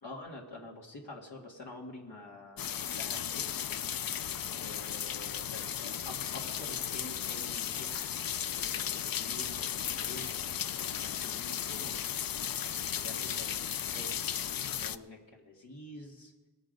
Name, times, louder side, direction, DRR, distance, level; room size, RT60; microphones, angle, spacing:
voice 1, 0.0-3.5 4.5-10.3 10.8-11.9 12.9-14.2 14.7-16.3, left 2 dB, 85° left, -3 dB, 1.9 m, -48 dB
sound 1, 2.6-15.0, left 9 dB, 60° left, 0.5 m, -35 dB
20.0 x 7.2 x 5.2 m, 1.2 s
wide cardioid pair, 75°, 39 cm